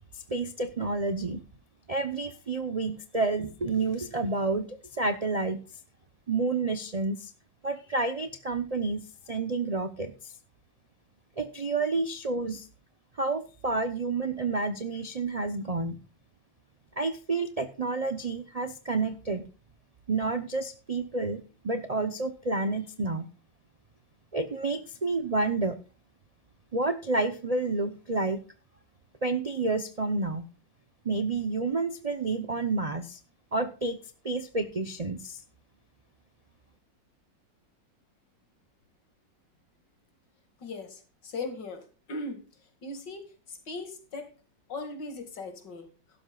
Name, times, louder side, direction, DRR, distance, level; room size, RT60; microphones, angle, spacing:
voice 1, 0.1-1.4 1.9-5.6 6.3-7.3 7.6-10.3 11.4-12.7 13.2-16.0 17.0-19.5 20.1-23.3 24.3-25.8 26.7-28.4 29.2-30.5 31.0-33.2 33.5-35.4, right 3 dB, 80° right, 10 dB, 0.3 m, -30 dB
voice 2, 40.6-42.4 42.8-44.3 44.7-45.9, left 3 dB, 70° left, 8 dB, 2.8 m, -38 dB
15.5 x 12.5 x 2.4 m, 0.34 s
omnidirectional pair, 2.0 m